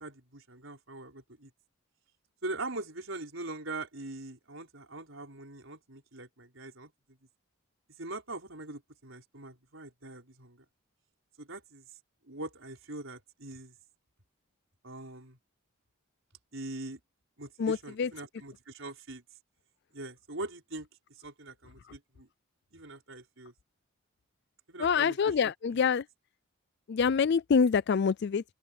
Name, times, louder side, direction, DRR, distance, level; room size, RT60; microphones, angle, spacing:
voice 1, 0.0-1.5 2.4-6.9 8.0-10.6 11.4-11.8 12.2-13.7 14.8-15.4 16.5-17.0 17.4-19.2 19.9-20.9 21.2-22.3 22.7-23.5 24.7-25.5, right 2 dB, 65° right, 5.1 m, -42 dB
voice 2, 17.6-18.1 24.8-26.0 26.9-28.4, left 6 dB, 50° left, 0.4 m, -26 dB
open air
head